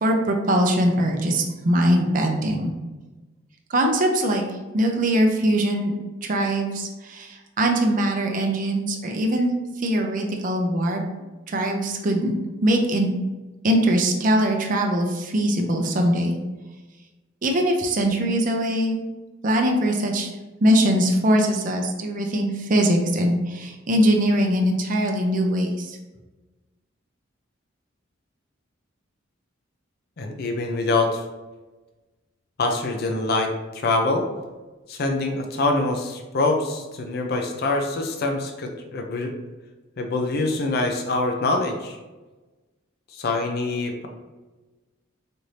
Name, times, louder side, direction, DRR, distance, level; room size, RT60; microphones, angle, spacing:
voice 1, 0.0-2.7 3.7-4.4 4.7-5.9 6.2-9.5 9.8-11.0 11.5-12.3 12.6-13.2 13.6-16.4 17.4-19.0 19.4-20.3 20.6-26.0, right 1 dB, 40° right, 3 dB, 0.5 m, -21 dB
voice 2, 30.2-31.2 32.6-34.3 34.9-39.3 40.0-42.0 43.1-44.1, left 2 dB, 55° left, 3 dB, 0.5 m, -24 dB
4.3 x 2.6 x 3.2 m, 1.2 s
head